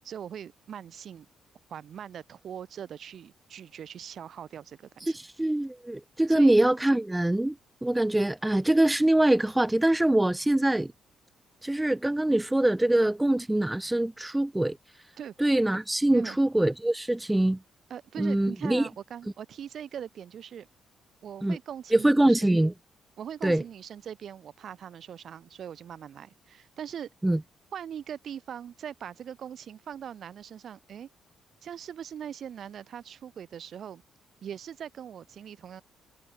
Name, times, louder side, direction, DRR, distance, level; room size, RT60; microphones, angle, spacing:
voice 1, 0.0-1.3 1.7-5.1 6.3-6.5 15.2-15.3 16.1-16.4 17.9-20.7 21.2-22.6 23.2-27.1 27.7-31.1 31.6-34.0 34.4-35.8, right 9 dB, 60° right, 8.0 m, -41 dB
voice 2, 5.1-7.5 7.8-10.9 11.6-14.8 15.4-17.6 18.2-18.9 21.4-21.6 21.9-22.7 23.4-23.6 27.2-27.4, right 1 dB, 10° right, 2.4 m, -24 dB
cardioid pair, 90°, 0 cm